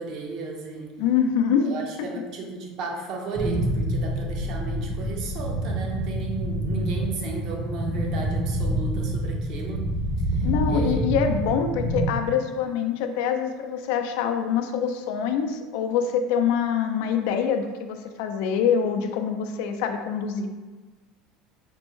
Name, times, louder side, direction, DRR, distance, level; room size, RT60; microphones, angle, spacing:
voice 1, 0.0-0.9 1.6-9.8 10.3-11.0, right 4 dB, 50° right, 1 dB, 0.6 m, -34 dB
voice 2, 1.0-1.7 2.0-2.1 10.4-20.5, left 7 dB, 75° left, 6 dB, 0.3 m, -25 dB
sound 1, 3.3-12.0, right 1 dB, 5° right, 0.6 m, -27 dB
4.3 x 2.0 x 3.0 m, 1.3 s
cardioid pair, 150°, 0 cm